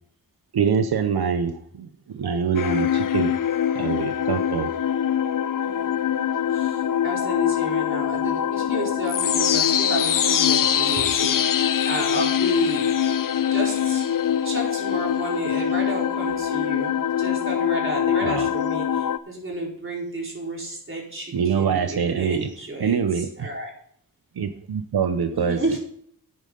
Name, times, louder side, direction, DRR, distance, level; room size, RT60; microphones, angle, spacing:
voice 1, 0.5-3.3 3.7-4.7 18.2-18.5 21.3-22.5 22.8-23.5 24.4-25.8, right 6 dB, 80° right, 8 dB, 0.8 m, -24 dB
sound 1, 2.5-19.2, left 9 dB, 60° left, 0.6 m, -23 dB
voice 2, 5.6-6.1 6.5-12.9 13.5-14.1 14.4-23.7 25.3-25.8, right 1 dB, 35° right, -2 dB, 4.5 m, -32 dB
11.5 x 8.9 x 3.9 m, 0.65 s
wide cardioid pair, 105°, 37 cm